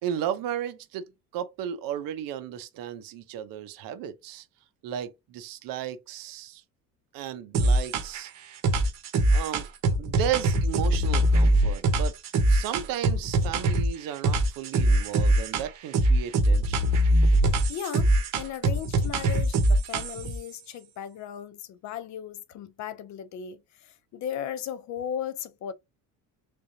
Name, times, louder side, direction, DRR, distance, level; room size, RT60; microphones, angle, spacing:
voice 1, 0.0-4.5 4.8-6.6 7.1-8.3 9.3-9.7 10.0-12.2 12.5-16.9, right 10 dB, 90° right, 0.8 m, -34 dB
sound 1, 7.5-8.3 8.6-13.9 14.2-15.7 15.9-20.4, right 1 dB, 55° right, 0.9 m, -22 dB
voice 2, 17.4-25.7, left 9 dB, 55° left, 0.6 m, -37 dB
3.7 x 3.4 x 2.7 m
cardioid pair, 180°, 33 cm